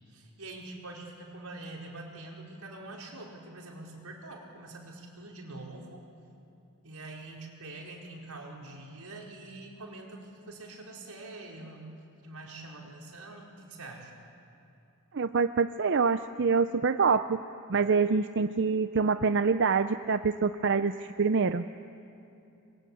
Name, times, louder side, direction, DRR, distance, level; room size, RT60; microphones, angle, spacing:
voice 1, 0.0-6.0 6.8-11.9 12.2-14.1, right 2 dB, 85° right, -1 dB, 4.8 m, -45 dB
voice 2, 15.1-17.4 17.7-21.6, right 5 dB, 55° right, 10 dB, 0.6 m, -26 dB
28.0 x 23.0 x 8.6 m, 2.7 s
head